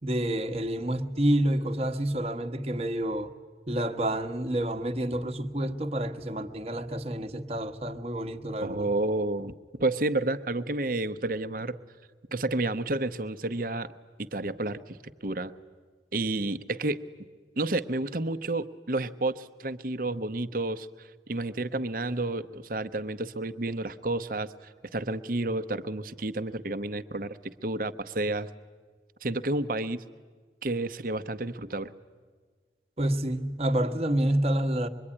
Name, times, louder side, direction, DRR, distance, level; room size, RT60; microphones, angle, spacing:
voice 1, 0.0-3.3 3.7-8.9 33.0-34.9, right 1 dB, 35° right, 1.2 m, -28 dB
voice 2, 8.6-9.5 9.8-11.8 12.3-13.9 14.2-15.0 15.2-15.5 16.1-17.0 17.6-24.5 24.9-28.5 29.2-30.0 30.6-31.9, right 2 dB, 50° right, 0.9 m, -30 dB
25.0 x 23.0 x 9.9 m
head